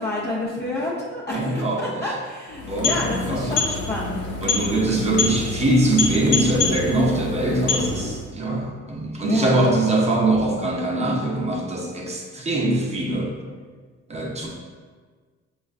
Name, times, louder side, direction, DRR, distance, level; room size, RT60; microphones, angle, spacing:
voice 1, 0.0-4.2 9.2-9.6, left 2 dB, 35° left, -7 dB, 0.7 m, -29 dB
voice 2, 1.3-2.0 2.7-3.6 4.4-13.3 14.1-14.5, right 1 dB, 20° right, -2 dB, 0.7 m, -22 dB
sound 1, 2.5-8.3, left 4 dB, 85° left, 0.7 m, -26 dB
5.1 x 2.4 x 2.4 m, 1.5 s
cardioid pair, 90°, 30 cm